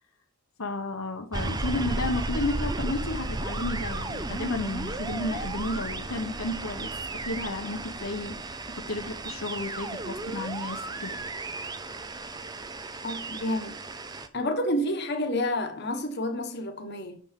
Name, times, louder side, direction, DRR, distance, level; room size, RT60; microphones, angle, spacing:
voice 1, 0.6-6.9 7.2-11.2, left 2 dB, 75° left, 1.2 m, -32 dB
sound 1, 1.3-14.3, right 2 dB, 20° right, 0.6 m, -34 dB
voice 2, 13.0-13.8 14.3-17.2, left 1 dB, 50° left, 1.3 m, -29 dB
7.0 x 6.5 x 5.9 m
head